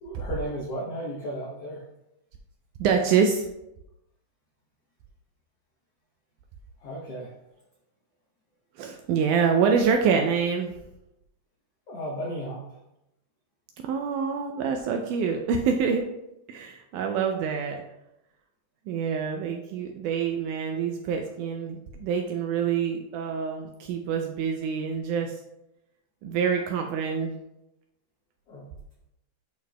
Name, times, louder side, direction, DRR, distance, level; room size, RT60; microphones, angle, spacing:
voice 1, 0.0-1.8 6.8-7.3 11.9-12.8 28.5-28.7, equal, 80° left, -3 dB, 1.3 m, -34 dB
voice 2, 2.8-3.5 8.8-10.7 13.9-16.0 16.5-17.8 18.9-25.4 26.2-27.3, right 6 dB, 80° right, 4 dB, 1.8 m, -26 dB
11.0 x 4.0 x 2.2 m, 0.87 s
omnidirectional pair, 3.9 m